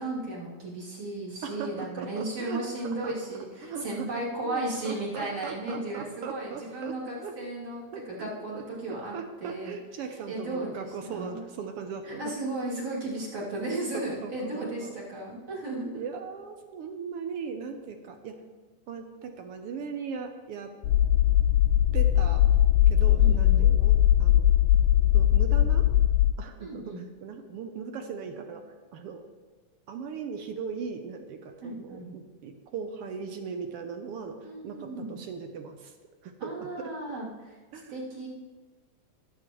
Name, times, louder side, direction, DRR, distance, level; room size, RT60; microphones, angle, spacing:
voice 1, 0.0-9.1 9.4-9.8 10.3-11.4 12.0-16.0 23.2-23.6 26.6-27.0 31.6-32.2 34.4-35.2 36.4-37.6 37.9-38.3, right 2 dB, 55° right, -7 dB, 4.0 m, -35 dB
voice 2, 1.4-3.1 3.6-7.4 7.9-8.6 9.1-12.3 14.1-15.0 15.9-18.4 18.9-20.7 21.9-22.4 22.9-24.5 25.1-25.9 26.4-28.6 28.9-29.2 29.9-34.4 34.6-35.9 36.2-36.9 37.7-37.9, right 6 dB, 75° right, 6 dB, 1.4 m, -39 dB
sound 1, 20.8-26.3, left 12 dB, 85° left, 1.9 m, -20 dB
19.0 x 8.3 x 3.1 m, 1.4 s
omnidirectional pair, 3.3 m